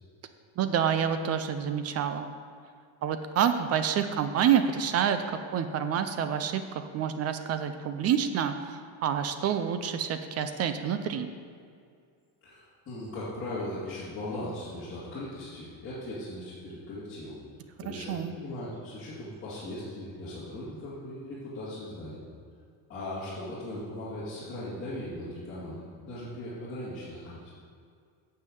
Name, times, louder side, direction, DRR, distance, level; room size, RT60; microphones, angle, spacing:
voice 1, 0.6-2.3 3.0-11.3 17.9-18.3, right 8 dB, 35° right, 9 dB, 0.4 m, -28 dB
voice 2, 12.4-17.4 17.8-22.2 22.9-27.5, left 1 dB, 25° left, -11 dB, 2.6 m, -38 dB
9.2 x 5.7 x 7.7 m, 2.3 s
cardioid pair, 170°, 45 cm